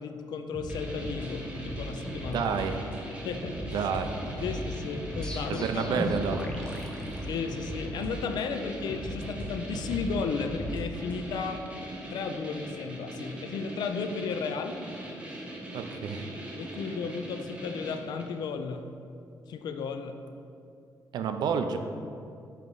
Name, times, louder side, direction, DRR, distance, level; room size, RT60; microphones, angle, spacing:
voice 1, 0.0-2.5 3.2-3.9 4.4-6.4 7.3-11.6 12.1-14.8 16.6-18.9 19.5-20.2, left 5 dB, 70° left, 7 dB, 0.4 m, -34 dB
sound 1, 0.5-2.7 2.9-3.1 3.4-5.4 5.6-8.5 8.9-11.4, equal, 25° left, 1.0 m, -39 dB
sound 2, 0.7-18.4, right 1 dB, 15° right, 0.8 m, -41 dB
voice 2, 2.3-2.8 3.7-4.2 5.5-6.4 15.7-16.3 21.1-21.8, right 6 dB, 70° right, 7 dB, 0.4 m, -29 dB
sound 3, 5.2-8.0, left 1 dB, 10° left, 0.5 m, -38 dB
5.6 x 4.6 x 3.9 m, 2.5 s
cardioid pair, 145°, 7 cm